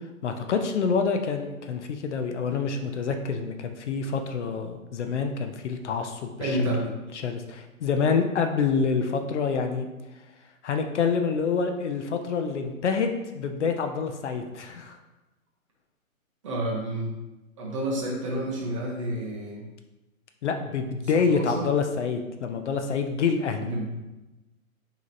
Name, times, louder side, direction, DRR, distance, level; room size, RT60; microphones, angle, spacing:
voice 1, 0.2-6.9 7.2-9.9 10.6-15.0 20.4-23.7, left 5 dB, 55° left, 6 dB, 0.5 m, -27 dB
voice 2, 6.4-6.9 16.4-17.2 17.6-19.7 21.1-21.7 23.6-24.0, right 1 dB, 25° right, -3 dB, 0.6 m, -29 dB
6.0 x 2.9 x 2.6 m, 1.1 s
hypercardioid pair, 150°, 42 cm